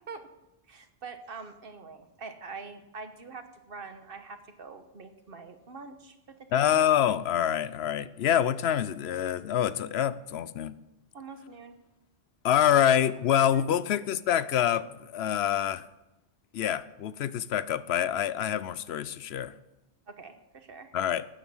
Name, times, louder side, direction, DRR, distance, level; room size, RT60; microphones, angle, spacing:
voice 1, 0.7-6.8 11.1-11.8 12.7-13.0 13.5-13.6 20.1-20.9, right 4 dB, 65° right, 8 dB, 1.4 m, -44 dB
voice 2, 6.5-10.7 12.4-15.8 16.5-19.5 20.9-21.3, left 10 dB, 85° left, 16 dB, 0.9 m, -26 dB
12.0 x 9.1 x 7.2 m, 0.95 s
omnidirectional pair, 1.0 m